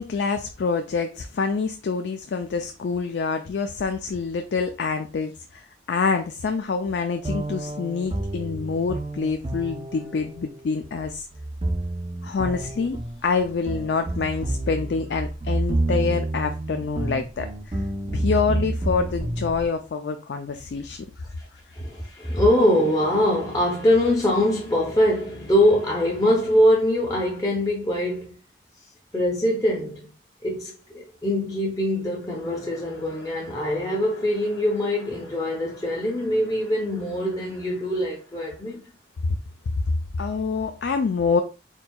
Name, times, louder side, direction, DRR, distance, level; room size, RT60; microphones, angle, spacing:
voice 1, 0.0-11.2 12.2-13.0 13.2-17.8 18.1-21.1 39.7-39.8 40.2-41.4, left 5 dB, 70° left, 0.4 m, -26 dB
sound 1, 7.2-19.7, right 1 dB, 30° right, 0.4 m, -29 dB
voice 2, 21.7-28.4 29.1-30.1 30.4-38.9, left 1 dB, 20° left, 0.6 m, -23 dB
4.4 x 3.8 x 2.2 m
head